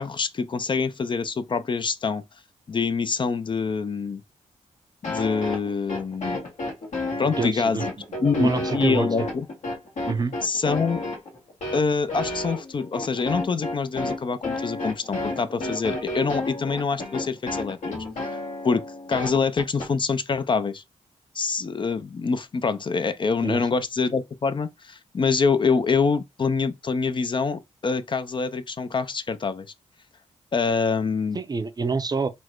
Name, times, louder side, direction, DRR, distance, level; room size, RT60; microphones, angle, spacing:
voice 1, 0.0-2.2 2.7-4.2 5.1-6.4 7.2-7.9 8.2-9.5 10.4-11.0 11.7-17.9 18.3-18.4 18.6-18.8 19.1-20.8 21.3-29.7 30.5-31.4, left 5 dB, 40° left, 0.5 m, -25 dB
sound 1, 5.0-19.9, left 2 dB, 70° left, 1.7 m, -31 dB
voice 2, 7.3-7.8 8.4-9.3 10.1-10.3 23.4-23.6 31.3-32.3, right 4 dB, 30° right, 0.6 m, -27 dB
4.3 x 2.1 x 4.4 m
cardioid pair, 80°, 13 cm